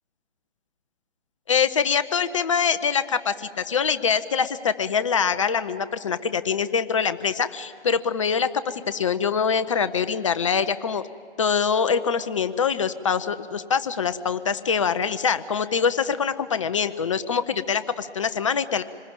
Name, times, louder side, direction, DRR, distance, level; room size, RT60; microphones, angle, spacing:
voice 1, 1.5-11.0 11.4-18.8, left 6 dB, 30° left, 12 dB, 0.6 m, -24 dB
26.5 x 20.5 x 9.0 m, 2.5 s
figure-of-eight pair, 145°, 33 cm